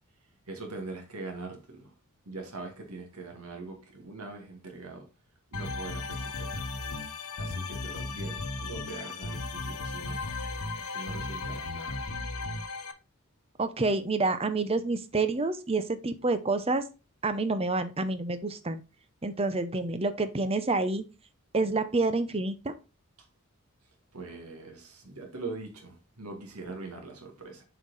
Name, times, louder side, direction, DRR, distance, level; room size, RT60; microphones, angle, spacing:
voice 1, 0.5-1.9 2.3-5.1 5.5-6.7 7.4-10.2 10.8-12.1 24.1-27.6, right 3 dB, 90° right, 2.1 m, -42 dB
sound 1, 5.5-12.9, left 3 dB, 90° left, 1.0 m, -35 dB
voice 2, 13.6-16.8 17.2-18.8 19.2-21.1 21.5-22.7, right 3 dB, 25° right, 0.7 m, -28 dB
7.5 x 4.7 x 4.0 m
head